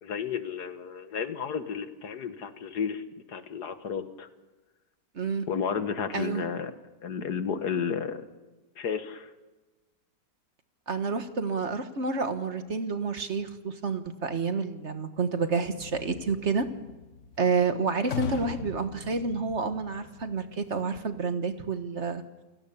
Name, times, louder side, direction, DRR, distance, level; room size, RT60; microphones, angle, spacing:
voice 1, 0.0-3.0 3.3-4.3 5.5-6.7 7.0-8.3 8.8-9.3, left 6 dB, 90° left, 9 dB, 2.0 m, -32 dB
voice 2, 5.1-5.5 6.1-6.4 10.9-16.7 17.4-22.2, right 4 dB, 45° right, 9 dB, 1.6 m, -29 dB
sound 1, 15.8-20.8, left 5 dB, 55° left, 1.4 m, -40 dB
30.0 x 17.0 x 7.1 m, 1.2 s
omnidirectional pair, 1.7 m